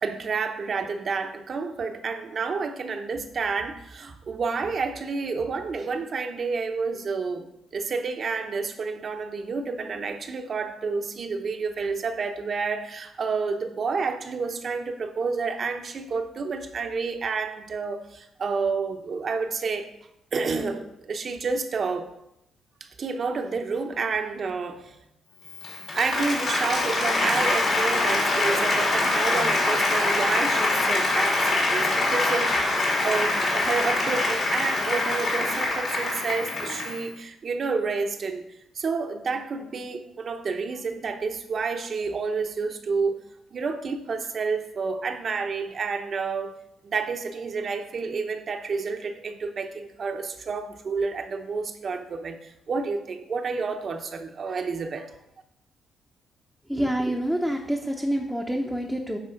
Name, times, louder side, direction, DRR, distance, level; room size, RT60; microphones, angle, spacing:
voice 1, 0.0-7.5 7.7-19.9 20.3-22.1 22.8-25.0 25.9-38.4 38.7-43.2 43.5-46.5 46.8-55.1, right 4 dB, 50° right, 6 dB, 0.9 m, -29 dB
Applause, 25.5-37.1, left 2 dB, 55° left, 2.7 m, -24 dB
voice 2, 56.7-59.2, equal, ahead, 0 dB, 0.9 m, -27 dB
9.5 x 3.6 x 5.1 m, 0.84 s
cardioid pair, 70°, 0 cm